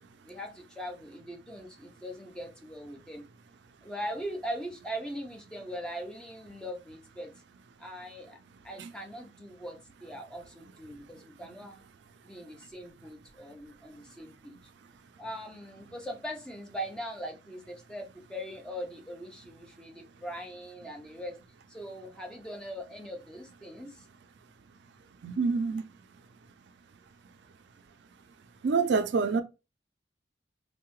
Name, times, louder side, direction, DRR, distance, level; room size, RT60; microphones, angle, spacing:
voice 1, 0.2-3.3 3.8-7.3 7.8-8.4 8.6-11.8 12.2-14.6 15.2-21.4 21.7-24.0, equal, 5° left, 0.6 m, -41 dB
voice 2, 25.2-25.8 28.6-29.4, right 4 dB, 75° right, 0.4 m, -26 dB
3.5 x 2.1 x 3.0 m
head